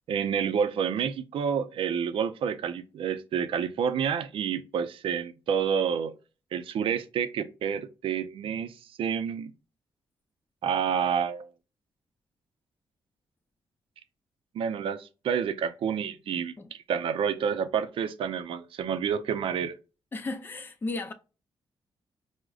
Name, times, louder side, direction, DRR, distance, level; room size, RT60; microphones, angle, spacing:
voice 1, 0.1-6.1 6.5-9.5 10.6-11.5 14.5-19.8, right 7 dB, 80° right, 0.5 m, -29 dB
voice 2, 20.1-21.1, left 2 dB, 25° left, 0.5 m, -34 dB
4.8 x 2.1 x 2.3 m
cardioid pair, 110°, 9 cm